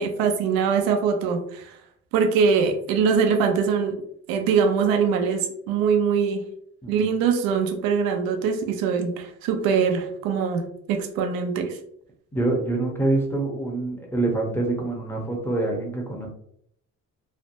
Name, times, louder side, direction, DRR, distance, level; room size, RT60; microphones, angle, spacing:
voice 1, 0.0-1.7 2.1-4.0 4.3-6.5 6.9-11.8, right 6 dB, 90° right, 5 dB, 0.5 m, -23 dB
voice 2, 6.8-7.1 12.3-16.3, right 2 dB, 5° left, 0 dB, 0.8 m, -26 dB
3.2 x 2.1 x 2.6 m, 0.68 s
cardioid pair, 90°, 34 cm